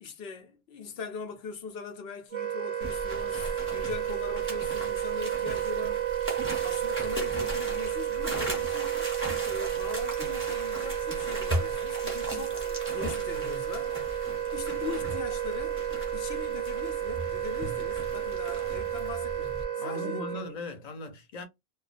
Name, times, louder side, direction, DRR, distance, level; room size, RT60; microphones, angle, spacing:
voice 1, 0.0-6.0 6.6-9.0 9.4-14.0 14.5-15.8 16.1-20.4, left 5 dB, 80° left, 0.9 m, -41 dB
Wind instrument woodwind instrument, 2.3-20.5, right 11 dB, 50° right, 0.4 m, -32 dB
sound 1, 2.8-19.6, right 1 dB, 15° right, 0.9 m, -38 dB
voice 2, 19.8-21.5, left 2 dB, 45° left, 0.7 m, -38 dB
2.3 x 2.2 x 2.4 m
omnidirectional pair, 1.0 m